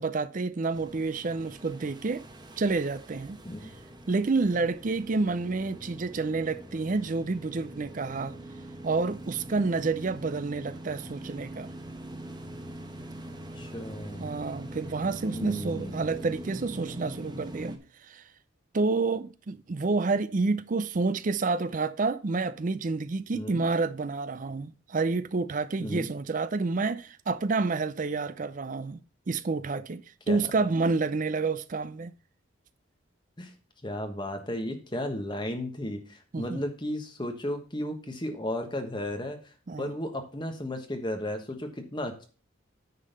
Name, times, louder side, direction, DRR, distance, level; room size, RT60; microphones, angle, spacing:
voice 1, 0.0-2.2 2.6-3.4 4.1-8.3 8.8-11.7 14.2-17.8 18.1-18.2 18.7-29.0 29.3-32.1 36.3-36.6 39.7-39.9, right 3 dB, 40° right, 0.5 m, -29 dB
sound 1, 0.7-17.8, right 1 dB, 20° right, 1.1 m, -43 dB
voice 2, 13.6-14.3 15.3-16.0 23.3-23.6 25.8-26.1 30.3-30.4 33.4-33.5 33.8-39.4 39.8-42.2, left 1 dB, 25° left, 1.3 m, -34 dB
9.6 x 3.9 x 6.6 m
head